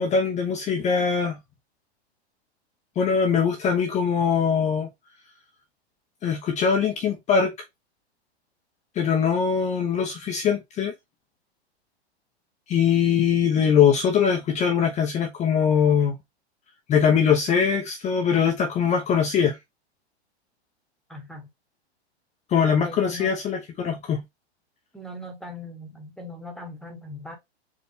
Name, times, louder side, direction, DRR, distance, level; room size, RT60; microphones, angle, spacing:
voice 1, 0.0-1.4 3.0-4.9 6.2-7.5 9.0-10.9 12.7-16.2 16.9-19.6 22.5-24.2, left 7 dB, 20° left, 0.7 m, -22 dB
voice 2, 21.1-21.5 22.7-23.3 24.9-27.4, left 1 dB, ahead, 1.2 m, -40 dB
4.6 x 2.4 x 3.4 m
hypercardioid pair, 125°, 33 cm